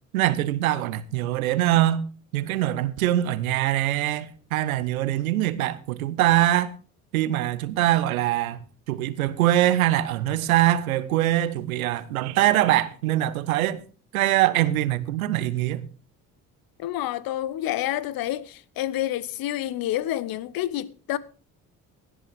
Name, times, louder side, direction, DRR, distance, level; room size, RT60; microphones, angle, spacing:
voice 1, 0.1-2.1 2.3-6.7 7.1-8.6 8.9-13.8 14.1-15.9, right 14 dB, 75° right, 0.8 m, -23 dB
voice 2, 16.8-21.2, left 13 dB, 55° left, 0.9 m, -28 dB
17.0 x 11.0 x 3.6 m
figure-of-eight pair, 45°, 42 cm